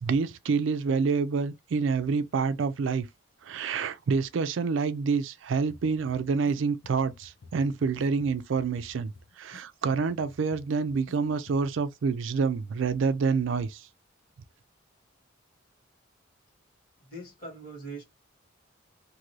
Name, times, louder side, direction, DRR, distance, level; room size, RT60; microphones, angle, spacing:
voice 1, 0.0-3.1 3.4-13.9, right 5 dB, 70° right, 0.4 m, -27 dB
sound 1, 5.7-6.5 6.8-9.6 9.9-11.2 11.5-11.9, left 3 dB, 85° left, 0.6 m, -53 dB
voice 2, 17.0-18.0, right 2 dB, 45° left, 1.6 m, -41 dB
2.6 x 2.5 x 3.0 m
head